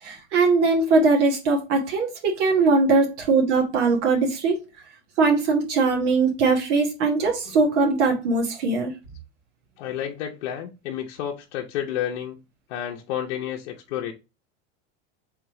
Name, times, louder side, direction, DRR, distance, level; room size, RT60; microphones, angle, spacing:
voice 1, 0.0-4.6 5.2-8.9, right 3 dB, 90° right, 1.4 m, -21 dB
voice 2, 9.8-12.4 12.7-14.1, left 10 dB, 60° left, 0.7 m, -31 dB
3.6 x 3.0 x 4.6 m
supercardioid pair, 175°, 35 cm